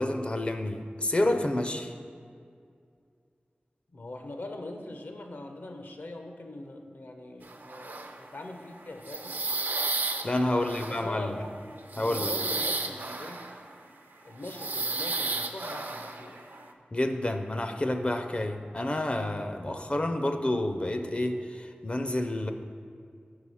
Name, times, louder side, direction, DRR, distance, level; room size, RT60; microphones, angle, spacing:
voice 1, 0.0-1.9 10.2-11.3 12.0-12.3 16.9-22.5, left 1 dB, 35° left, 6 dB, 0.4 m, -29 dB
voice 2, 3.9-9.4 10.5-11.5 11.9-13.4 14.2-16.4 19.7-19.9, left 2 dB, 70° left, 4 dB, 0.6 m, -42 dB
sound 1, 7.4-8.5 8.7-13.9 14.4-16.7, right 3 dB, 60° right, 0.5 m, -33 dB
6.0 x 4.8 x 5.4 m, 2.3 s
wide cardioid pair, 70°, 4 cm